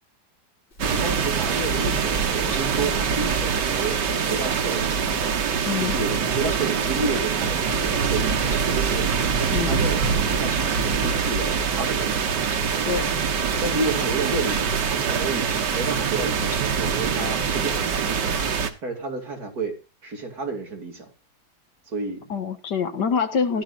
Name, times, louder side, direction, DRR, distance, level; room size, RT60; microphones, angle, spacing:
Clock, 0.7-17.6, right 1 dB, 50° left, 5.6 m, -42 dB
voice 1, 0.8-4.0 4.3-5.2 5.8-9.1 9.4-10.1 10.3-12.3 13.6-18.4 18.8-19.8 20.0-21.1 21.9-22.3 23.5-23.6, right 3 dB, 65° right, 3.2 m, -31 dB
sound 1, 0.8-18.7, right 6 dB, 85° right, 1.9 m, -24 dB
voice 2, 5.6-6.0 9.5-9.8 12.8-13.1 22.3-23.6, left 6 dB, 85° left, 2.0 m, -25 dB
16.0 x 12.0 x 2.5 m
omnidirectional pair, 1.8 m